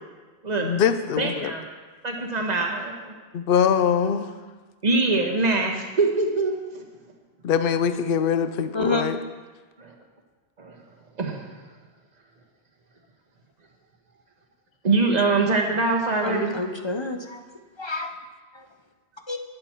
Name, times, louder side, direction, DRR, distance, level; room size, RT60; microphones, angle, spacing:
voice 1, 0.6-1.5 3.3-4.3 7.4-9.2, left 7 dB, 65° left, 11 dB, 0.8 m, -23 dB
voice 2, 1.2-1.6 2.0-3.1 4.8-6.8 9.8-9.9 10.6-10.8 11.2-11.5 14.8-16.5, right 3 dB, 40° right, 2 dB, 1.5 m, -23 dB
voice 3, 16.2-17.4 17.8-18.1 18.5-18.6 19.3-19.4, left 2 dB, 30° left, 5 dB, 0.6 m, -28 dB
11.5 x 10.5 x 4.5 m, 1.3 s
omnidirectional pair, 1.1 m